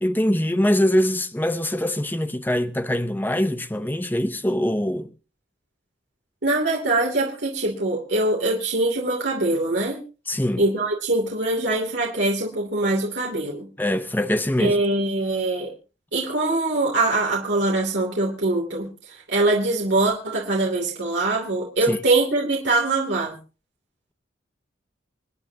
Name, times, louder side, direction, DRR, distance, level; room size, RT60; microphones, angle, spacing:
voice 1, 0.0-5.1 10.3-10.6 13.8-14.8 21.9-22.0, left 1 dB, 10° left, 0.8 m, -23 dB
voice 2, 6.4-10.0 10.6-13.7 14.6-15.7 16.1-18.9 19.3-23.4, right 2 dB, 65° right, 2.9 m, -23 dB
28.0 x 9.7 x 2.8 m
head